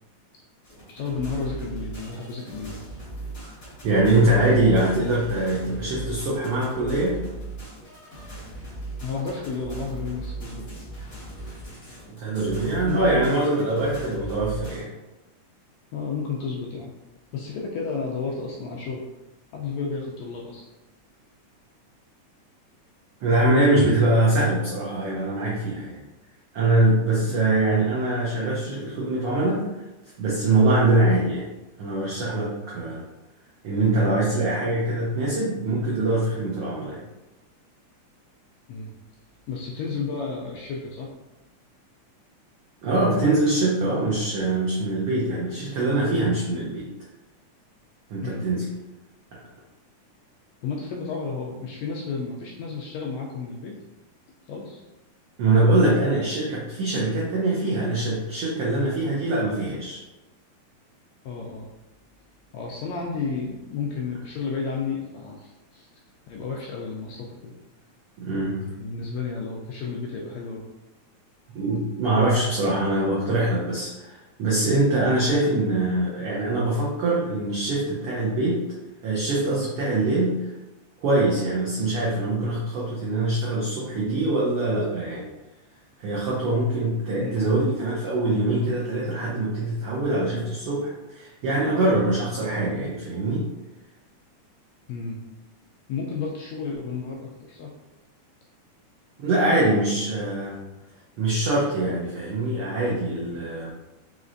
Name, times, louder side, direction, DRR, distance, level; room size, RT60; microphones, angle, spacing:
sound 1, 0.6-14.8, right 2 dB, 40° left, 1.0 m, -38 dB
voice 1, 0.9-2.8 9.0-10.7 12.9-13.0 15.9-16.9 17.3-19.1 19.5-20.7 27.3-27.4 38.7-38.9 39.5-41.1 48.2-48.5 50.6-53.8 54.5-54.8 61.3-61.7 62.5-65.9 66.3-67.5 68.8-70.6 87.2-87.5 94.9-95.2 95.9-97.7, left 5 dB, 80° left, -2 dB, 1.6 m, -32 dB
voice 2, 3.8-7.2 12.1-14.9 23.2-26.0 26.5-29.7 30.2-31.5 31.8-33.0 33.6-37.0 42.8-46.9 48.1-48.6 55.4-60.0 68.2-68.6 71.5-78.6 79.0-80.4 81.0-85.3 86.0-93.5 99.2-100.6 101.2-103.7, right 2 dB, 85° right, -6 dB, 1.2 m, -23 dB
5.1 x 3.1 x 2.5 m, 1.0 s
omnidirectional pair, 3.5 m